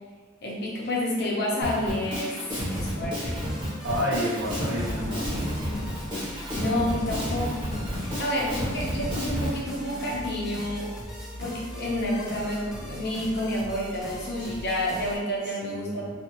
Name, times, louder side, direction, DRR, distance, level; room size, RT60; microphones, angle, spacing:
voice 1, 0.4-2.4 2.7-3.5 6.5-7.6 8.0-10.9 11.3-16.1, left 1 dB, 55° left, -4 dB, 0.7 m, -29 dB
sound 1, 1.6-15.2, equal, 5° right, 0.5 m, -40 dB
Drum kit, 1.6-9.6, equal, 25° right, 0.9 m, -31 dB
voice 2, 3.8-5.5 8.1-8.2 15.6-16.1, equal, 55° right, -4 dB, 0.7 m, -30 dB
2.4 x 2.4 x 2.8 m, 1.4 s
head